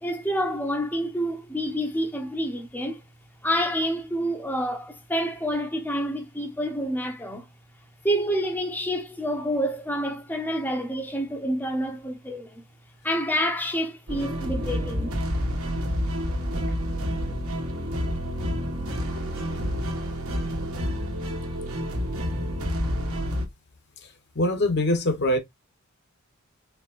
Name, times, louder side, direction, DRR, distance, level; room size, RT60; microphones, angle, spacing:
voice 1, 0.0-3.0 3.4-7.5 8.0-12.6 13.0-15.1, equal, 10° left, 0.7 m, -28 dB
sound 1, 14.1-23.5, equal, 75° right, 1.3 m, -29 dB
voice 2, 24.3-25.4, left 1 dB, 50° left, 1.0 m, -23 dB
4.5 x 3.4 x 2.4 m
head